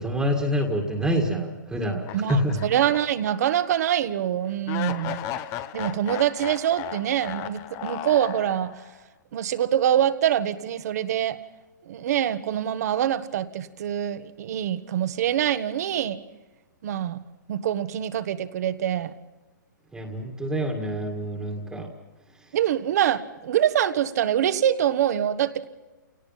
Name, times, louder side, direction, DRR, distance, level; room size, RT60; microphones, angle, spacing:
voice 1, 0.0-2.6 19.9-21.9, equal, 5° right, 2 dB, 2.0 m, -26 dB
sound 1, 2.0-3.3 3.7-3.8 4.7-9.0, left 11 dB, 25° left, 1.0 m, -35 dB
voice 2, 2.1-5.2 5.7-8.7 9.3-11.4 11.8-16.2 16.8-17.2 17.5-19.1 21.8-21.9 22.5-25.7, right 10 dB, 55° right, 12 dB, 1.5 m, -25 dB
29.0 x 18.0 x 5.8 m, 1.1 s
hypercardioid pair, 145°, 10 cm